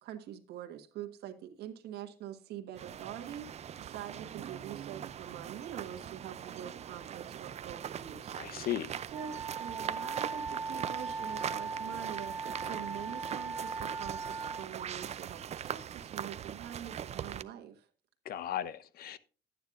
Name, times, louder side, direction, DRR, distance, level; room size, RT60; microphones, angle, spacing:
voice 1, 0.0-3.5 3.8-8.7 9.1-17.9, right 10 dB, 75° right, 1.5 m, -45 dB
sound 1, 2.8-17.4, right 9 dB, 40° right, 0.5 m, -41 dB
voice 2, 8.4-8.9 18.3-19.2, left 11 dB, 65° left, 0.9 m, -36 dB
Wind instrument woodwind instrument, 9.1-14.7, right 4 dB, ahead, 4.0 m, -39 dB
12.0 x 9.3 x 2.5 m
cardioid pair, 110°, 17 cm